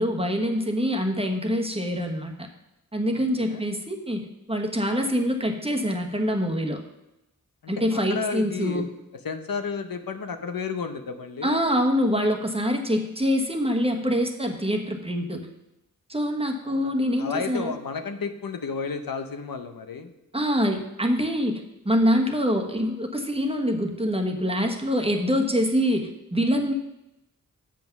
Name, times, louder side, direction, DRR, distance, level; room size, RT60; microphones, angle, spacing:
voice 1, 0.0-2.3 2.9-6.8 7.7-8.8 11.4-15.5 16.1-17.7 20.3-26.7, equal, 15° right, 2 dB, 1.3 m, -25 dB
voice 2, 3.1-3.6 7.6-8.8 9.2-11.6 16.7-16.9 17.2-20.1, left 5 dB, 80° left, 7 dB, 0.8 m, -32 dB
7.3 x 5.9 x 5.9 m, 0.90 s
cardioid pair, 45°, 34 cm